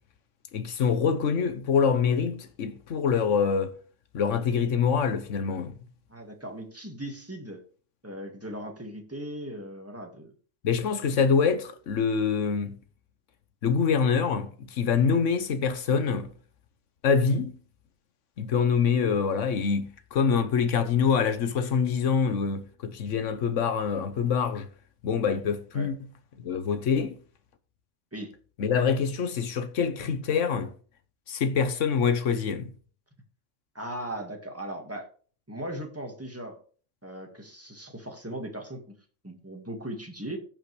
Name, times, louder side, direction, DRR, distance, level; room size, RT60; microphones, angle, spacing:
voice 1, 0.5-3.7 4.1-5.7 10.6-12.8 13.6-16.3 17.0-17.6 18.4-24.7 25.0-26.0 26.4-27.2 28.6-30.7 31.3-32.7, left 6 dB, 90° left, 1.3 m, -25 dB
voice 2, 6.1-7.6 8.0-10.3 25.7-25.9 28.1-28.3 33.7-35.1 35.5-36.6 37.0-39.0 39.2-40.4, right 1 dB, 10° right, 1.8 m, -38 dB
15.5 x 5.6 x 3.3 m
omnidirectional pair, 1.2 m